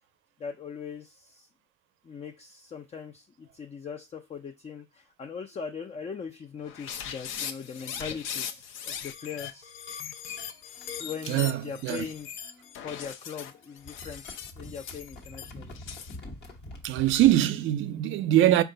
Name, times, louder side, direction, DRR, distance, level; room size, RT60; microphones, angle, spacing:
voice 1, 0.4-1.5 2.0-9.7 11.0-12.3 12.7-15.7, left 6 dB, 30° left, 0.4 m, -40 dB
sound 1, 6.7-16.2, left 8 dB, 90° left, 0.5 m, -39 dB
sound 2, 10.3-13.0 13.3-17.4, left 1 dB, 55° left, 1.2 m, -47 dB
voice 2, 11.3-12.0 16.8-18.6, right 13 dB, 85° right, 0.4 m, -23 dB
4.5 x 2.4 x 3.7 m
cardioid pair, 90°, 20 cm